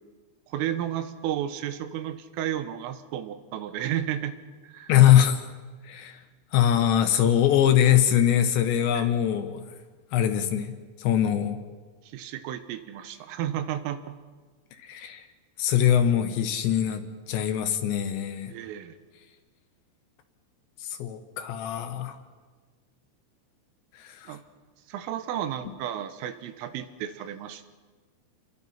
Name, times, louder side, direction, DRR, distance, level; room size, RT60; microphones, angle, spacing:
voice 1, 0.5-4.4 4.6-4.9 8.9-9.1 12.1-14.2 18.5-19.0 24.3-24.4 24.9-27.7, right 11 dB, 90° right, 10 dB, 3.8 m, -32 dB
voice 2, 4.9-5.4 5.8-6.2 6.5-9.6 10.1-11.6 14.8-15.2 15.6-18.5 20.8-22.2 23.9-24.4, left 10 dB, 70° left, 8 dB, 3.1 m, -22 dB
27.5 x 22.0 x 5.8 m, 1.4 s
omnidirectional pair, 5.7 m